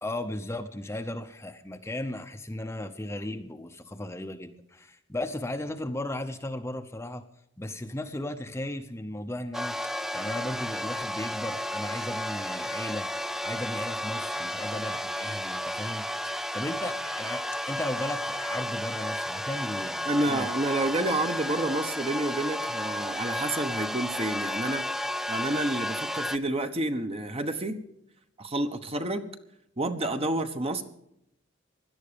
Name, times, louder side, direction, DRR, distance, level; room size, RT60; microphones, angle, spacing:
voice 1, 0.0-7.2 7.6-13.1 13.4-20.5, left 1 dB, 15° left, 7 dB, 0.8 m, -36 dB
sound 1, 9.5-26.4, left 1 dB, ahead, 0.5 m, -33 dB
voice 2, 20.1-24.8 25.3-27.8 28.4-29.3 29.8-30.8, right 1 dB, 30° right, 8 dB, 1.1 m, -29 dB
17.0 x 12.0 x 5.1 m, 0.79 s
head